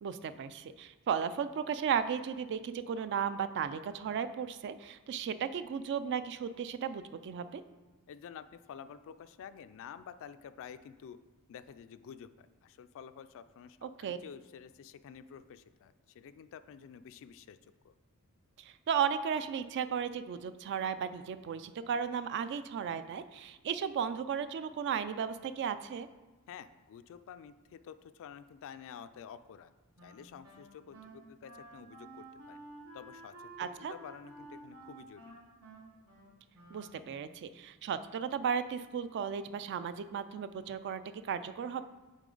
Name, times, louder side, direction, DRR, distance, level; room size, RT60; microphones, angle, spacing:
voice 1, 0.0-7.6 13.8-14.2 18.6-26.1 33.6-33.9 36.7-41.8, right 7 dB, 50° right, 12 dB, 0.3 m, -35 dB
voice 2, 8.1-11.2 11.5-17.6 17.8-17.9 26.5-29.7 30.0-32.6 32.9-35.3, left 7 dB, 60° left, 14 dB, 0.3 m, -50 dB
Wind instrument woodwind instrument, 30.0-37.4, right 2 dB, 80° right, 1.4 m, -52 dB
8.2 x 3.7 x 3.9 m, 1.2 s
head